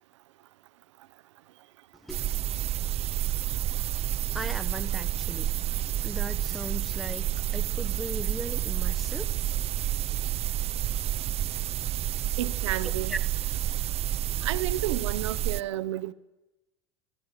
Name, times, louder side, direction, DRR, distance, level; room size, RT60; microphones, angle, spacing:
voice 1, 2.0-2.4 4.3-5.6 6.0-9.4 10.0-10.2 12.8-13.2, right 1 dB, ahead, 1.1 m, -39 dB
sound 1, 2.1-15.6, right 12 dB, 45° right, 0.7 m, -29 dB
voice 2, 12.4-13.1 14.4-16.1, right 13 dB, 90° right, 0.8 m, -31 dB
23.5 x 13.5 x 9.2 m
supercardioid pair, 90°, 15 cm